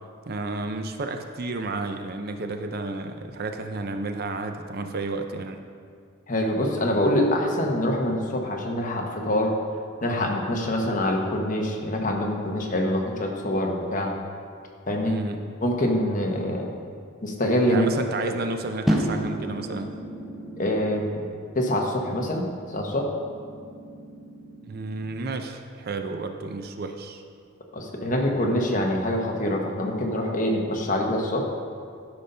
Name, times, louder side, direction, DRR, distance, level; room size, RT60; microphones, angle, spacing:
voice 1, 0.3-5.6 15.1-15.5 17.7-20.0 24.7-27.2, right 3 dB, 45° right, 6 dB, 0.5 m, -31 dB
voice 2, 6.3-9.5 10.0-14.1 14.9-15.2 15.6-16.7 17.2-17.8 20.6-21.3 21.5-22.4 22.7-23.1 27.7-31.4, left 1 dB, 40° left, 1 dB, 1.1 m, -25 dB
sound 1, 18.9-25.1, equal, ahead, 0.7 m, -33 dB
12.0 x 4.1 x 5.5 m, 2.2 s
head